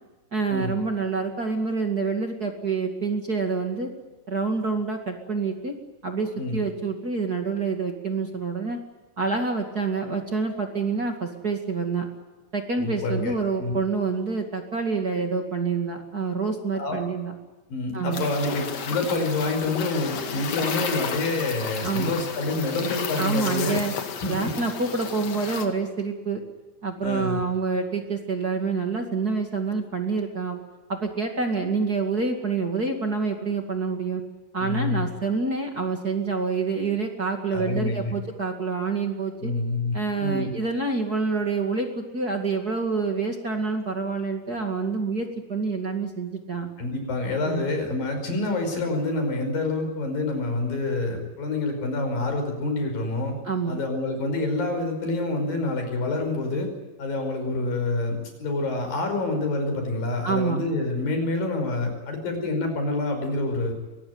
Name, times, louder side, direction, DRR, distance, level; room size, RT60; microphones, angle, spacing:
voice 1, 0.3-3.9 4.3-5.7 6.0-8.8 9.2-12.1 12.5-17.3 17.9-18.3 21.8-22.1 23.2-23.9 24.3-26.4 26.8-30.6 30.9-34.2 34.5-39.5 39.9-46.7 47.4-47.7 53.4-53.8 60.2-60.6, right 4 dB, 30° right, 3 dB, 2.3 m, -27 dB
voice 2, 12.8-13.7 16.7-17.0 17.7-23.8 24.2-24.5 27.0-27.4 34.6-35.1 37.5-38.1 39.4-40.5 46.8-53.3 53.7-56.7 57.0-63.7, left 2 dB, 85° left, 5 dB, 7.0 m, -27 dB
sound 1, 18.1-25.7, left 6 dB, 55° left, 3.0 m, -33 dB
23.5 x 19.5 x 9.5 m, 1.2 s
omnidirectional pair, 3.9 m